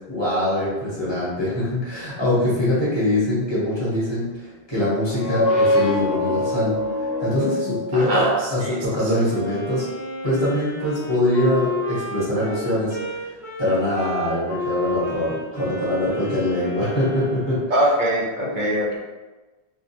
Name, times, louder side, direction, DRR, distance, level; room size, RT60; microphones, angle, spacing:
voice 1, 0.1-9.8 10.2-17.6, left 1 dB, 25° left, -10 dB, 1.0 m, -23 dB
sound 1, 5.0-8.6, left 1 dB, 70° left, 0.7 m, -24 dB
voice 2, 7.9-9.1 17.7-19.0, right 1 dB, 55° right, -4 dB, 0.6 m, -23 dB
Wind instrument woodwind instrument, 9.2-17.7, left 2 dB, 20° right, 0.8 m, -32 dB
2.2 x 2.2 x 2.7 m, 1.2 s
omnidirectional pair, 1.1 m